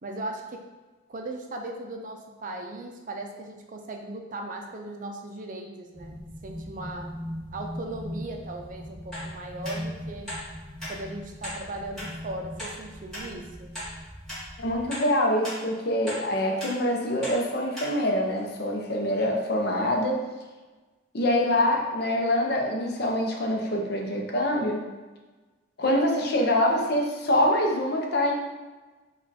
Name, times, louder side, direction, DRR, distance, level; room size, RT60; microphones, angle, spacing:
voice 1, 0.0-0.6 1.1-7.1 7.5-10.3 10.9-13.7, right 2 dB, 45° right, 3 dB, 0.4 m, -38 dB
sound 1, 5.9-14.9, equal, 30° left, 1.1 m, -40 dB
sound 2, 9.1-9.3 9.6-9.8 10.3-10.4 10.8-10.9 11.4-11.6 12.0-12.1 12.6-12.7 13.1-13.2 13.7-13.9 14.3-14.4 14.9-15.1 15.4-15.6 16.1-16.2 16.6-16.7 17.2-17.4 17.7-17.9 18.4-18.5, left 1 dB, 5° left, 1.5 m, -36 dB
voice 2, 14.6-20.2 21.1-24.8 25.8-28.3, left 1 dB, 55° left, 1 dB, 0.7 m, -25 dB
4.1 x 2.4 x 4.1 m, 1.2 s
head